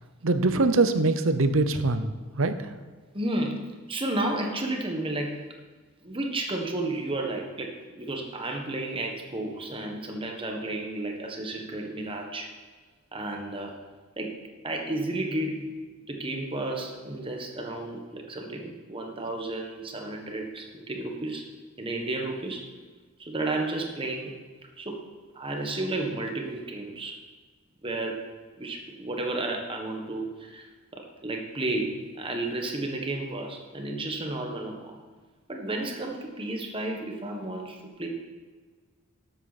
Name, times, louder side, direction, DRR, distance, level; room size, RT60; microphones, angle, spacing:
voice 1, 0.2-2.1 2.4-2.7, right 3 dB, 70° right, 10 dB, 0.8 m, -23 dB
voice 2, 3.1-5.4 6.0-12.5 13.1-13.8 14.2-14.4 14.6-15.7 16.1-21.5 21.8-22.7 23.2-24.3 24.8-25.0 25.3-27.2 27.8-28.2 28.6-30.7 30.9-35.0 35.5-38.1, right 2 dB, 25° right, 2 dB, 1.4 m, -32 dB
12.5 x 8.1 x 4.2 m, 1.4 s
head